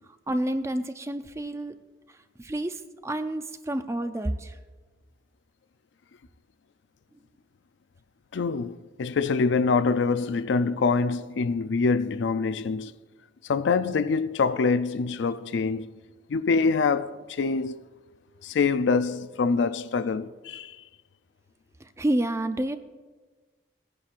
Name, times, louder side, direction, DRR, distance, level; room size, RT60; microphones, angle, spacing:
voice 1, 0.3-1.7 2.4-4.6 21.8-22.8, right 1 dB, 15° right, 0.4 m, -29 dB
voice 2, 8.3-12.9 13.4-15.9 16.3-17.8 18.4-20.8, left 4 dB, 85° left, 0.4 m, -25 dB
18.5 x 9.9 x 2.5 m
head